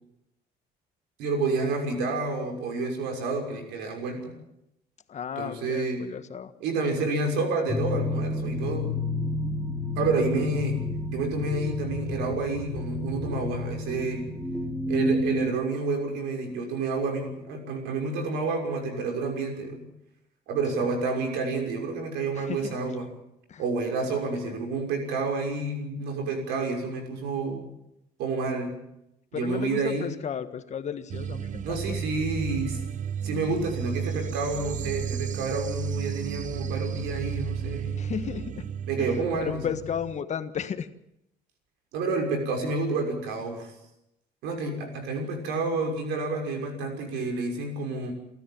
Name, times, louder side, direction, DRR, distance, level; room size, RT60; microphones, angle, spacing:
voice 1, 1.2-4.3 5.4-6.1 6.6-8.9 10.0-10.8 11.1-14.3 14.9-19.9 20.5-23.1 23.6-27.7 28.2-28.8 29.3-30.0 31.6-32.8 33.2-38.0 38.9-39.6 41.9-43.7 44.4-48.1, right 3 dB, 90° right, 3 dB, 6.2 m, -29 dB
voice 2, 5.1-6.5 10.0-10.1 20.7-20.8 22.3-22.8 23.5-23.6 24.1-24.2 24.5-24.6 29.3-32.0 38.0-40.9, left 8 dB, 45° left, 10 dB, 1.6 m, -34 dB
sound 1, 7.7-15.5, left 1 dB, ahead, 2.7 m, -30 dB
sound 2, 31.1-40.2, right 8 dB, 50° right, 0.9 m, -33 dB
29.0 x 13.5 x 7.6 m, 0.81 s
cardioid pair, 110°, 17 cm